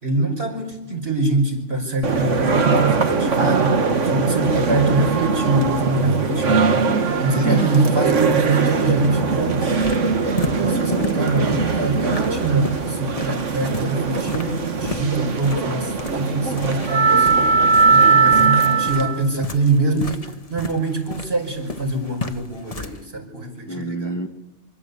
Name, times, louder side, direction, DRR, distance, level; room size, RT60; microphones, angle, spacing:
voice 1, 0.0-6.9 7.2-9.7 10.5-17.5 17.9-24.1, right 2 dB, 55° right, 3 dB, 6.0 m, -24 dB
sound 1, 2.0-19.2, right 4 dB, 75° right, 1.8 m, -20 dB
voice 2, 6.8-7.7 10.6-11.2 23.7-24.3, right 2 dB, 15° left, 5 dB, 1.8 m, -27 dB
sound 2, 9.7-23.0, left 3 dB, 30° left, 1.3 m, -34 dB
26.5 x 24.5 x 8.4 m, 0.95 s
omnidirectional pair, 1.3 m